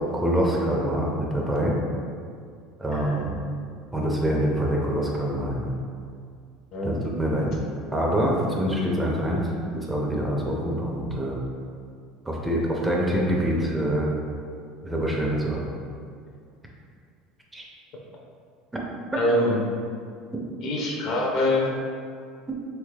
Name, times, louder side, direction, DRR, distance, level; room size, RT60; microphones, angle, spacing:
voice 1, 0.0-1.7 2.8-3.3 3.9-5.7 6.8-7.5 7.9-11.4 12.3-14.1 14.8-15.6 17.5-17.7, equal, 10° right, -2 dB, 0.5 m, -25 dB
voice 2, 2.9-3.4 6.7-7.1 7.4-7.5 19.2-19.6 20.6-21.7, left 1 dB, 55° left, -2 dB, 0.6 m, -25 dB
3.4 x 3.2 x 2.3 m, 2.2 s
supercardioid pair, 120°, 0 cm